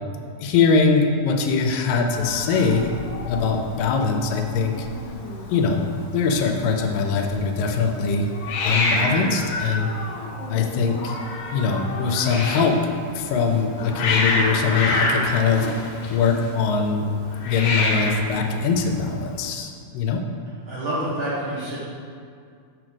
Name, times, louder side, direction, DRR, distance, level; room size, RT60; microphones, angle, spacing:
voice 1, 0.4-2.9 3.2-4.9 5.5-5.8 6.1-8.3 8.6-9.9 10.5-11.2 11.5-12.8 13.1-15.7 16.1-17.1 17.4-20.2, left 5 dB, 85° left, 4 dB, 2.4 m, -22 dB
Hiss, 2.1-19.5, left 2 dB, 70° left, 2.1 m, -29 dB
voice 2, 20.6-21.8, right 1 dB, 40° right, -10 dB, 2.5 m, -27 dB
6.5 x 5.0 x 6.2 m, 2.2 s
omnidirectional pair, 3.9 m